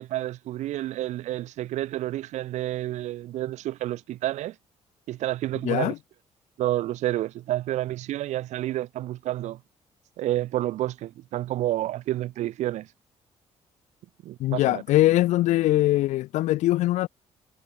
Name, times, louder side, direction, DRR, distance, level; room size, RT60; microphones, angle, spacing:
voice 1, 0.0-4.6 5.1-5.9 6.6-9.6 10.2-12.9 14.2-14.8, right 14 dB, 75° right, 0.4 m, -29 dB
voice 2, 5.6-6.0 14.4-17.1, left 16 dB, 85° left, 0.4 m, -22 dB
cardioid pair, 105°, 12 cm